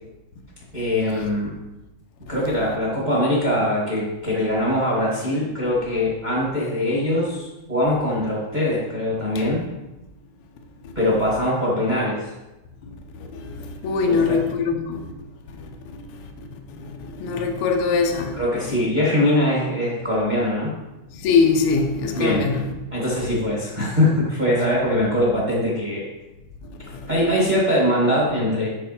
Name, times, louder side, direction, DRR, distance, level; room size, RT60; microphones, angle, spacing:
voice 1, 0.7-1.5 2.3-9.6 10.9-12.3 14.0-14.4 18.3-20.7 22.1-22.4 22.9-26.1 27.1-28.7, left 1 dB, 25° right, 1.1 m, -22 dB
voice 2, 13.2-15.1 15.6-15.7 16.8-18.4 21.1-22.6, left 5 dB, 75° left, 1.3 m, -22 dB
7.6 x 5.7 x 4.3 m
omnidirectional pair, 3.7 m